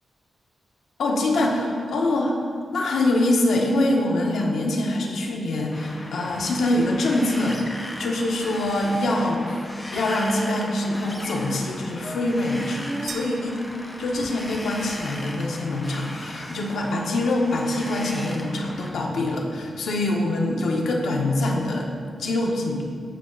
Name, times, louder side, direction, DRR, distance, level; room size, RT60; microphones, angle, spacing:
voice 1, 1.0-2.3 2.7-9.6 9.9-13.6 14.0-22.8, left 1 dB, 85° left, 0 dB, 1.5 m, -24 dB
Wind, 5.7-18.9, left 1 dB, 15° left, 1.0 m, -38 dB
sound 1, 6.3-7.1 7.4-7.6 7.9-8.1 8.3-8.4 8.6-8.9 9.5-10.6 11.2-11.3 11.7-11.8 12.0-13.2 14.0-15.0, right 1 dB, 10° right, 0.4 m, -41 dB
sound 2, 13.1-14.5, right 6 dB, 75° right, 0.6 m, -42 dB
14.5 x 5.7 x 4.2 m, 2.2 s
wide cardioid pair, 120°, 0 cm